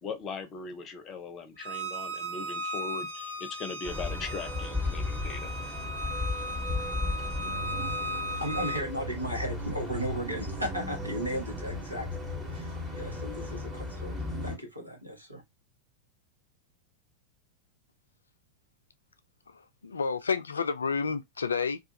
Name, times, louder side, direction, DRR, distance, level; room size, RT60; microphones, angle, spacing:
voice 1, 0.0-5.5, left 5 dB, 30° left, 0.6 m, -39 dB
Bowed string instrument, 1.6-8.8, equal, 70° right, 0.7 m, -36 dB
sound 1, 3.8-14.6, left 2 dB, 15° right, 1.1 m, -35 dB
voice 2, 8.1-15.4, equal, 90° right, 1.0 m, -36 dB
voice 3, 19.5-21.8, left 5 dB, 75° left, 0.3 m, -30 dB
2.4 x 2.4 x 2.8 m
figure-of-eight pair, 90°, 0 cm